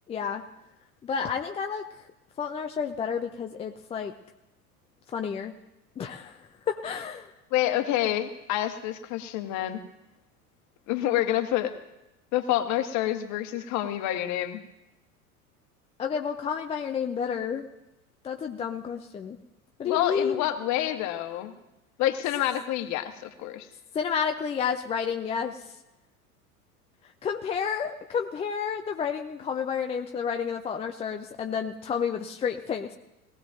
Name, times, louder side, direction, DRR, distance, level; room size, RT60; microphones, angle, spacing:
voice 1, 0.1-0.4 1.0-1.9 2.4-4.1 5.1-5.5 6.0-7.3 16.0-17.6 18.2-19.4 19.8-20.5 23.9-25.6 27.2-32.9, left 7 dB, 15° left, 4 dB, 0.5 m, -30 dB
voice 2, 7.5-9.8 10.9-11.7 12.3-14.6 19.8-21.5 22.0-23.7, left 13 dB, 40° left, 7 dB, 1.4 m, -28 dB
21.5 x 16.0 x 2.6 m, 0.95 s
figure-of-eight pair, 80°, 45 cm